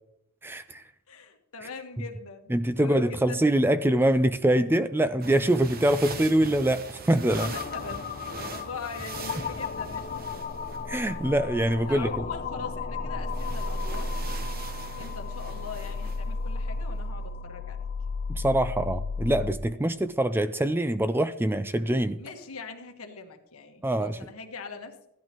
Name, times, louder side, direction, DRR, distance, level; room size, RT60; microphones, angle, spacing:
voice 1, 0.4-0.8 2.5-7.5 10.9-12.2 18.3-22.2 23.8-24.2, right 1 dB, 10° right, 12 dB, 0.3 m, -24 dB
voice 2, 1.1-3.4 7.3-10.4 11.8-14.1 15.0-17.8 22.2-25.1, left 4 dB, 75° left, 4 dB, 1.5 m, -41 dB
sound 1, 5.2-11.2 13.3-16.2, right 4 dB, 45° right, 0.9 m, -42 dB
sound 2, 7.3-19.5, left 3 dB, 40° left, 0.6 m, -34 dB
15.0 x 11.5 x 3.0 m, 0.86 s
head